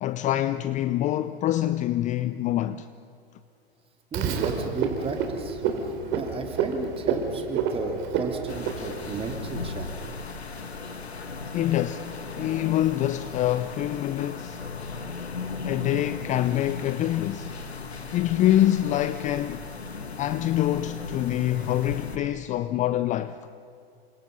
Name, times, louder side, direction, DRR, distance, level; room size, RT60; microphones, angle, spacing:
voice 1, 0.0-2.9 11.5-12.1 12.4-14.6 15.6-17.5 18.1-19.7 20.2-23.4, left 13 dB, 25° left, 0.6 m, -25 dB
voice 2, 4.1-5.6 6.1-10.1, right 4 dB, 20° right, 3.2 m, -34 dB
Frog, 4.1-9.3, right 6 dB, 40° right, 3.9 m, -29 dB
sound 1, 8.5-22.2, left 4 dB, 90° left, 2.1 m, -37 dB
29.0 x 25.5 x 5.5 m
hypercardioid pair, 110°, 31 cm